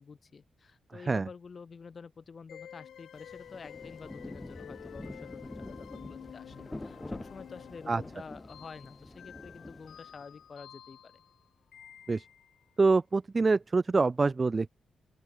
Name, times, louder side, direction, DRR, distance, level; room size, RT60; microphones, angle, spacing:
voice 1, 0.0-11.2, left 5 dB, 40° left, 1.8 m, -49 dB
sound 1, 2.5-12.6, left 9 dB, 75° left, 1.5 m, -51 dB
Rain, 3.1-10.4, left 1 dB, 10° left, 2.6 m, -46 dB
voice 2, 12.8-14.7, right 3 dB, 25° right, 0.4 m, -25 dB
open air
wide cardioid pair, 125°, 0 cm